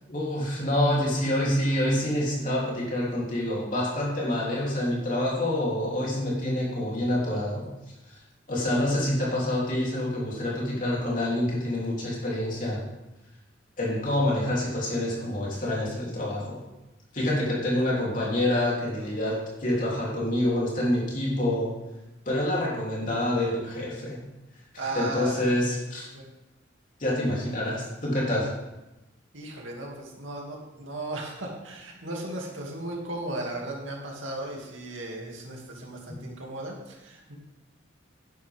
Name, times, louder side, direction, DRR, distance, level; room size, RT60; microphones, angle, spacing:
voice 1, 0.1-7.7 8.1-8.2 8.5-12.8 13.8-16.6 17.1-21.7 22.2-24.2 24.7-26.1 27.0-28.5, left 1 dB, 40° left, -4 dB, 3.3 m, -27 dB
voice 2, 24.8-25.4 26.1-26.3 29.3-37.3, right 2 dB, 85° right, -1 dB, 2.5 m, -36 dB
11.0 x 10.5 x 3.6 m, 0.98 s
head